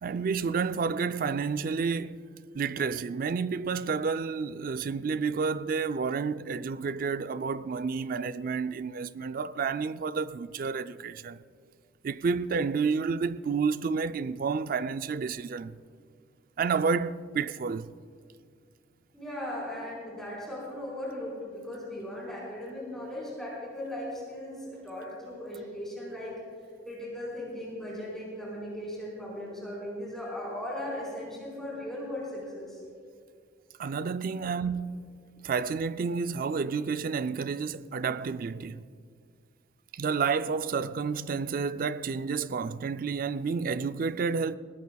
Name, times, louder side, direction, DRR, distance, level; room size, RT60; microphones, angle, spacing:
voice 1, 0.0-2.2 2.5-11.4 12.0-15.8 16.6-17.9 33.8-35.2 35.4-38.8 39.9-44.6, right 5 dB, 45° right, 0.3 m, -30 dB
voice 2, 19.1-26.3 26.8-32.8 34.4-34.5, left 1 dB, ahead, 4.4 m, -38 dB
20.0 x 17.5 x 2.3 m
head